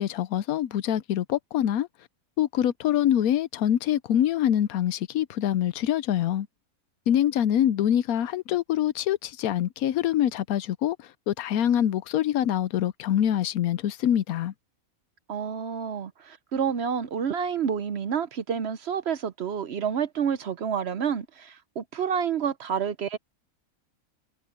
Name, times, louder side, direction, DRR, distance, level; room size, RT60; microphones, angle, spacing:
voice 1, 0.0-1.9 2.4-6.5 7.1-11.0 11.3-14.5, left 11 dB, 85° left, 1.1 m, -25 dB
voice 2, 15.3-23.2, right 7 dB, 55° right, 0.8 m, -29 dB
omnidirectional pair, 1.5 m